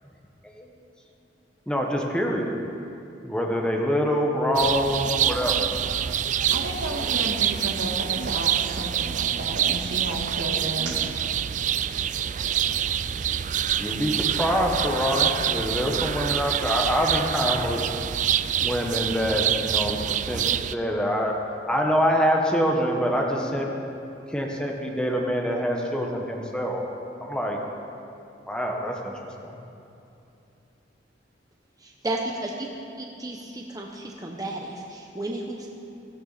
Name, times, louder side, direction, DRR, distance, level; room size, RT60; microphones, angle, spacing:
voice 1, 1.7-2.5 3.2-5.6 13.8-17.8 18.6-21.4 21.7-23.7 24.3-26.8 27.2-27.6 28.5-29.1 29.4-29.5, equal, 5° left, 0 dB, 1.4 m, -25 dB
sound 1, 4.6-20.7, right 9 dB, 45° right, 0.3 m, -26 dB
voice 2, 5.9-11.1, right 1 dB, 75° right, 1 dB, 1.9 m, -33 dB
voice 3, 31.8-32.7 33.2-35.7, right 1 dB, 20° right, 0 dB, 0.9 m, -33 dB
16.5 x 15.0 x 4.2 m, 2.8 s
head